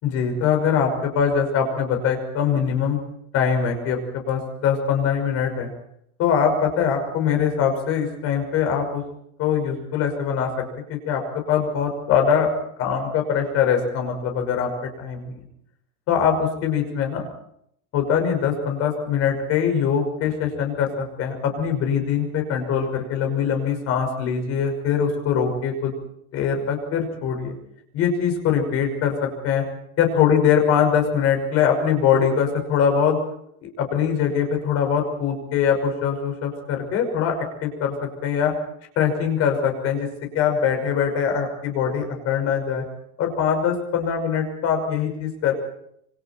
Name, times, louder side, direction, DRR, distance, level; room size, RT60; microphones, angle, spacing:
voice 1, 0.0-3.0 3.3-5.7 6.2-9.0 9.4-11.2 11.5-12.5 12.8-14.7 15.0-15.4 16.1-17.3 17.9-25.9 26.3-27.5 27.9-29.6 30.0-33.2 33.6-37.9 38.2-38.5 39.0-40.1 40.3-42.8 43.2-45.5, left 7 dB, 35° left, 4 dB, 5.8 m, -22 dB
27.0 x 25.5 x 4.6 m, 0.72 s
supercardioid pair, 180°, 40 cm